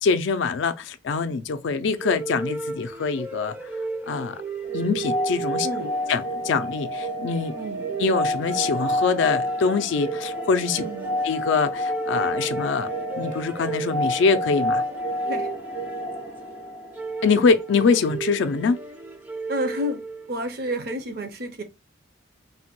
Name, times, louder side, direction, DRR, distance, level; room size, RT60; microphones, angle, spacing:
voice 1, 0.0-3.6 4.1-4.4 4.7-5.7 6.1-7.5 8.0-10.8 11.2-12.9 13.2-14.8 17.2-18.8, left 5 dB, 65° left, 0.3 m, -24 dB
sound 1, 2.0-20.5, right 4 dB, 10° right, 0.4 m, -35 dB
sound 2, 4.6-17.4, equal, 80° right, 1.9 m, -29 dB
voice 2, 10.8-11.2 15.3-15.5 19.5-20.0 20.3-21.6, equal, 50° right, 0.6 m, -30 dB
3.3 x 2.2 x 2.9 m
head